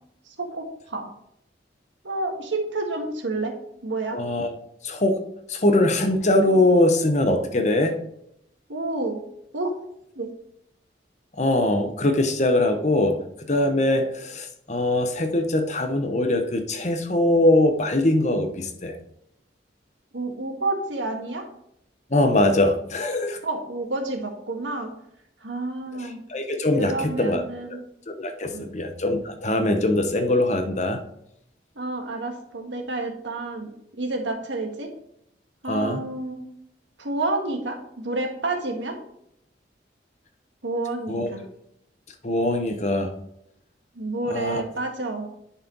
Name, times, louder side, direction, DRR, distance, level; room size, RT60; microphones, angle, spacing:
voice 1, 0.3-1.1 2.0-3.5 3.8-4.2 8.7-9.2 9.5-9.7 10.1-10.3 13.9-14.0 20.1-21.4 23.4-24.9 25.4-26.2 26.8-27.8 28.5-28.7 31.7-33.7 34.0-34.9 35.6-36.4 37.0-39.0 40.6-41.4 43.9-45.3, right 2 dB, 85° right, 3 dB, 1.6 m, -29 dB
voice 2, 4.1-4.5 4.8-5.2 5.5-8.0 11.4-13.2 13.5-19.0 22.1-23.4 26.0-27.4 28.1-31.0 35.7-36.0 41.1-41.3 42.2-43.1 44.3-44.6, left 1 dB, 40° left, 6 dB, 0.9 m, -22 dB
10.5 x 4.3 x 3.9 m, 0.76 s
head